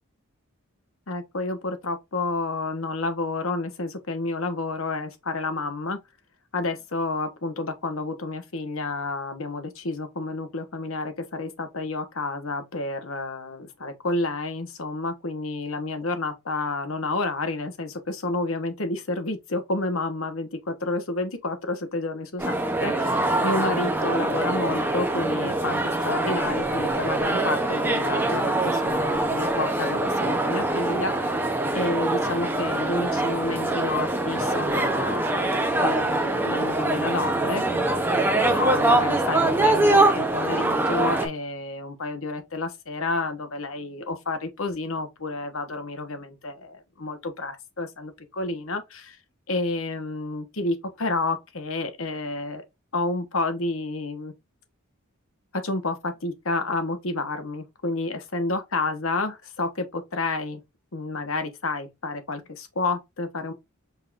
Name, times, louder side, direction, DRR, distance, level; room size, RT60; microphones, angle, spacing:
voice 1, 1.1-6.0 6.5-31.3 31.7-49.2 49.5-52.6 52.9-54.3 55.5-60.6 60.9-63.5, left 2 dB, 65° left, 1.2 m, -30 dB
sound 1, 22.4-41.3, right 2 dB, 10° right, 0.8 m, -24 dB
5.5 x 3.7 x 2.5 m
head